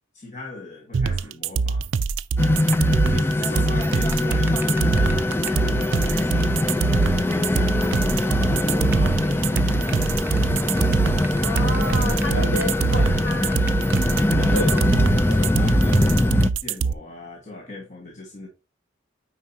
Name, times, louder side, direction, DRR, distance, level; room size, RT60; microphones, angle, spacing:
voice 1, 0.1-1.9 3.1-6.7 7.3-10.5 10.8-11.5 12.3-13.6 14.3-14.9 15.3-18.5, left 2 dB, 35° left, 1.4 m, -38 dB
sound 1, 0.9-16.9, right 4 dB, 65° right, 0.4 m, -23 dB
sound 2, 2.4-16.5, left 1 dB, 10° left, 0.4 m, -22 dB
sound 3, 3.9-5.6 5.9-6.1 6.4-6.5 6.7-6.8 7.0-7.1 7.3-7.9 8.2-8.4 8.7-14.2 14.8-14.9, right 3 dB, 10° right, 0.8 m, -39 dB
voice 2, 11.4-13.6 14.5-15.5, left 1 dB, 70° left, 2.8 m, -31 dB
9.4 x 4.5 x 2.8 m
head